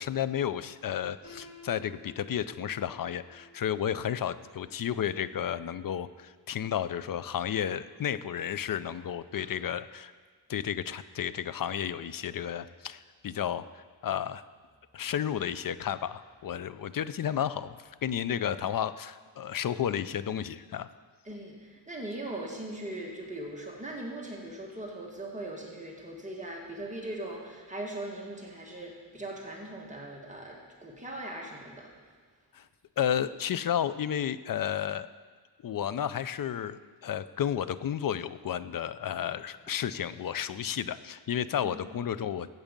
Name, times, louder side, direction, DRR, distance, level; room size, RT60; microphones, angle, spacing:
voice 1, 0.0-10.1 10.5-14.4 14.9-20.9 32.5-32.6 33.0-35.1 35.6-42.5, left 9 dB, 50° left, 15 dB, 0.5 m, -32 dB
Piano, 1.2-7.1, left 1 dB, 25° left, 3.4 m, -55 dB
voice 2, 21.3-31.9 41.6-41.8, right 1 dB, 15° right, -2 dB, 1.9 m, -40 dB
14.5 x 8.1 x 5.2 m, 1.5 s
wide cardioid pair, 115°, 44 cm